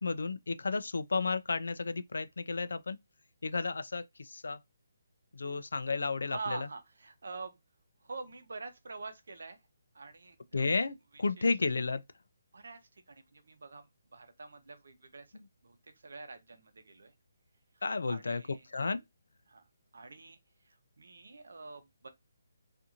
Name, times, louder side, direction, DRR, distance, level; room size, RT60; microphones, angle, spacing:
voice 1, 0.0-3.0 3.4-4.6 5.3-6.6 10.5-12.0 15.3-15.4 17.8-18.4 18.7-19.0, left 4 dB, 80° left, 0.3 m, -32 dB
voice 2, 5.5-7.6 8.0-9.6 9.9-10.7 11.1-11.5 12.5-15.3 15.6-17.1 18.1-18.7 19.5-19.7 19.9-20.4 20.6-22.1, right 4 dB, 80° right, 0.7 m, -46 dB
2.8 x 2.5 x 2.4 m
hypercardioid pair, 160°, 0 cm